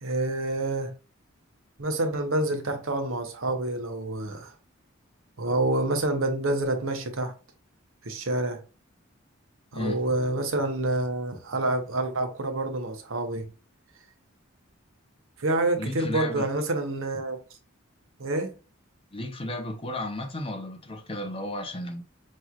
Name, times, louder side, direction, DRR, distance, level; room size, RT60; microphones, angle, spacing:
voice 1, 0.0-0.9 1.8-4.5 5.4-7.3 8.0-8.6 9.7-13.4 15.4-17.4 18.2-18.5, right 2 dB, 75° right, 0.9 m, -27 dB
voice 2, 15.8-16.5 19.1-22.0, left 1 dB, 25° left, 0.7 m, -33 dB
5.6 x 3.1 x 2.4 m
head